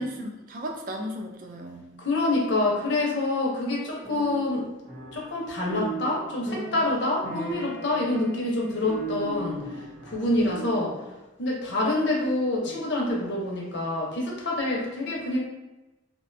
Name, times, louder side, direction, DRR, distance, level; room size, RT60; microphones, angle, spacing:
voice 1, 0.0-1.9 8.0-8.4, equal, 40° right, 2 dB, 0.3 m, -35 dB
voice 2, 2.0-4.7 5.1-9.6 10.0-10.9 11.4-15.4, left 2 dB, 55° left, -3 dB, 0.6 m, -26 dB
sound 1, 4.0-10.9, right 2 dB, 80° right, 0.9 m, -37 dB
2.4 x 2.2 x 2.5 m, 1.0 s
head